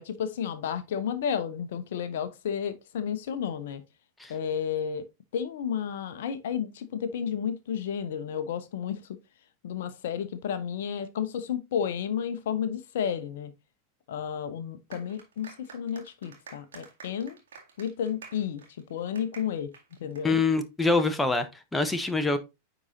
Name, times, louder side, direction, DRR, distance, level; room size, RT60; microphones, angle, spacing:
voice 1, 0.0-3.8 4.3-5.0 5.3-9.1 9.6-13.5 14.1-17.4 17.8-18.6 18.9-19.7 20.0-20.4, left 8 dB, 55° left, 0.7 m, -32 dB
sound 1, 14.9-20.9, right 5 dB, 65° right, 2.0 m, -50 dB
voice 2, 20.2-22.4, left 3 dB, 5° left, 0.9 m, -25 dB
9.6 x 3.9 x 2.7 m
figure-of-eight pair, 90°, 0 cm